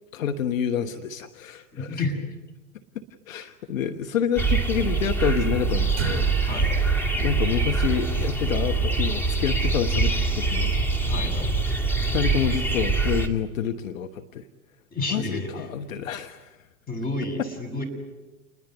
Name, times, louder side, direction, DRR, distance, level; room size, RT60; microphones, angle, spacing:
voice 1, 0.1-2.0 3.3-6.5 7.2-10.7 12.0-14.4 15.1-16.6, left 8 dB, 65° left, 7 dB, 1.4 m, -28 dB
voice 2, 1.7-2.2 6.5-6.7 11.0-11.7 14.9-15.7 16.9-17.8, left 2 dB, 20° left, 3 dB, 7.8 m, -30 dB
sound 1, 4.4-13.3, right 3 dB, 5° left, 2.5 m, -24 dB
sound 2, 6.0-10.5, right 13 dB, 35° right, 4.8 m, -37 dB
29.0 x 21.0 x 9.6 m, 1.1 s
hypercardioid pair, 100°, 42 cm